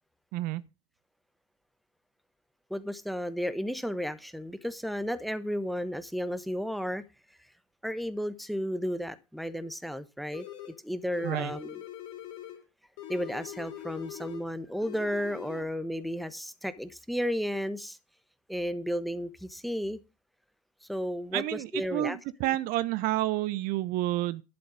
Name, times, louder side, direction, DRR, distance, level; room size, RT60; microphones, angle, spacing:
voice 1, 2.7-7.0 7.8-10.4 10.8-11.8 13.1-18.0 18.5-20.0 20.9-22.2, equal, ahead, 1.2 m, -33 dB
sound 1, 10.3-10.8 11.1-12.6 13.0-14.5 14.8-15.6, left 11 dB, 75° left, 2.9 m, -43 dB
voice 2, 21.3-24.4, right 15 dB, 60° right, 0.7 m, -30 dB
11.5 x 7.9 x 5.1 m
hypercardioid pair, 70°, 17 cm